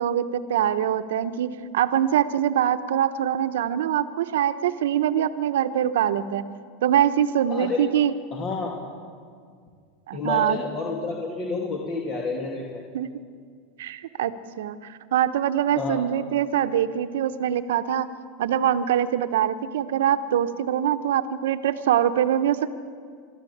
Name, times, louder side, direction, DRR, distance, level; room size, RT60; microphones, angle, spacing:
voice 1, 0.0-6.4 6.8-8.1 10.1-10.6 12.9-13.1 13.8-18.1 18.4-22.8, right 10 dB, 85° right, 10 dB, 1.0 m, -23 dB
voice 2, 8.3-8.8 10.1-12.8 15.7-16.0, left 3 dB, 40° left, -1 dB, 2.7 m, -29 dB
23.5 x 13.0 x 8.7 m, 2.1 s
supercardioid pair, 125°, 0 cm